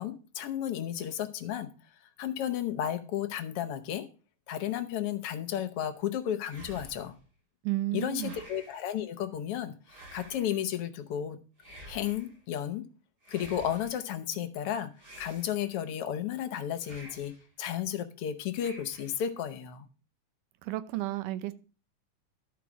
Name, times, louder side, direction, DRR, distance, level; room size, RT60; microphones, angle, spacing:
voice 1, 0.0-1.7 2.2-4.1 4.5-7.1 7.9-11.4 11.9-12.8 13.3-14.9 15.2-17.3 17.6-19.9, left 10 dB, 70° left, 1.4 m, -33 dB
sound 1, 6.4-7.2 8.1-8.9 9.8-10.7 11.6-12.4 13.2-14.0 15.0-15.9 16.8-17.5 18.5-19.2, right 1 dB, 30° right, 3.0 m, -50 dB
voice 2, 7.6-8.3 20.6-21.5, right 17 dB, 85° right, 2.3 m, -32 dB
12.0 x 4.9 x 6.2 m
omnidirectional pair, 3.6 m